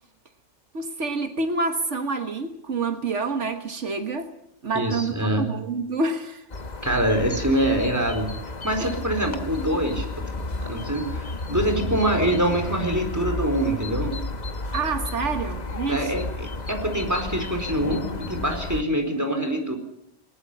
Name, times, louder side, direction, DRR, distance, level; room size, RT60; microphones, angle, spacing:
voice 1, 0.7-4.3 4.6-6.5 8.8-9.0 14.7-16.3, right 3 dB, 75° right, 7 dB, 1.8 m, -28 dB
voice 2, 4.7-5.5 6.8-8.3 8.6-10.1 10.6-14.1 15.9-19.8, right 1 dB, 15° right, 4 dB, 4.4 m, -25 dB
sound 1, 6.5-18.8, left 2 dB, 35° left, 1.3 m, -32 dB
21.0 x 20.0 x 8.5 m, 0.75 s
omnidirectional pair, 1.2 m